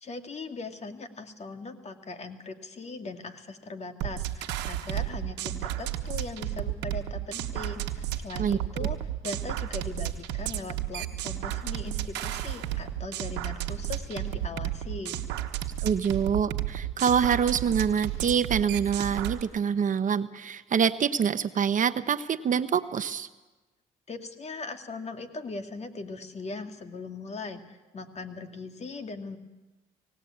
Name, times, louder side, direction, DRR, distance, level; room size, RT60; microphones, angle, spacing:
voice 1, 0.0-9.0 9.2-15.2 24.1-29.4, left 3 dB, 40° left, 7 dB, 2.1 m, -39 dB
sound 1, 4.0-19.4, right 13 dB, 90° right, 1.3 m, -32 dB
voice 2, 15.8-23.3, right 7 dB, 50° right, 12 dB, 0.9 m, -26 dB
19.0 x 17.0 x 8.7 m, 1.2 s
supercardioid pair, 70°, 18 cm